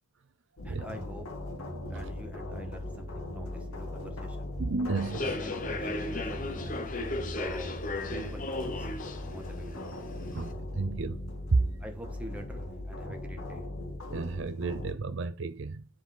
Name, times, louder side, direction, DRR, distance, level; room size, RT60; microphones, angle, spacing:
sound 1, 0.6-14.9, left 1 dB, 85° left, 2.1 m, -39 dB
voice 1, 0.6-1.3 1.9-4.5 5.2-6.7 7.4-7.8 8.0-8.9 9.3-9.9 11.8-13.6, equal, 5° right, 1.4 m, -45 dB
voice 2, 4.6-5.4 10.3-11.2 11.5-11.6 14.1-15.9, right 3 dB, 60° right, 0.5 m, -31 dB
Human voice / Subway metro underground, 4.9-10.5, left 2 dB, 40° left, 1.0 m, -36 dB
10.5 x 4.8 x 3.8 m
head